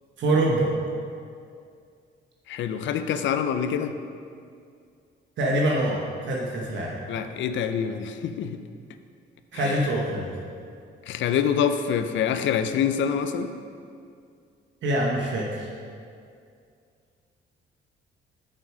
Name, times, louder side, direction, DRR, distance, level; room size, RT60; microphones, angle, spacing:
voice 1, 0.2-0.7 5.4-7.0 9.5-10.3 14.8-15.7, right 1 dB, 70° right, -2 dB, 1.1 m, -25 dB
voice 2, 2.5-3.9 7.1-8.6 9.5-9.8 11.1-13.5, left 8 dB, 70° left, 9 dB, 0.5 m, -26 dB
6.7 x 6.0 x 4.9 m, 2.3 s
cardioid pair, 90°, 20 cm